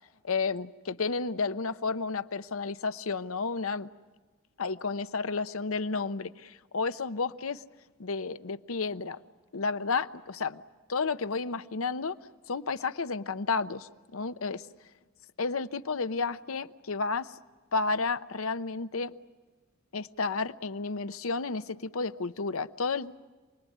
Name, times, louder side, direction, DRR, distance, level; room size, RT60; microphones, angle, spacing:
voice 1, 0.2-3.9 4.6-7.6 8.0-9.2 9.5-10.6 10.9-12.2 12.5-14.6 15.4-17.3 17.7-19.1 19.9-23.2, left 4 dB, 90° left, 12 dB, 0.8 m, -31 dB
28.5 x 21.0 x 9.4 m, 1.3 s
head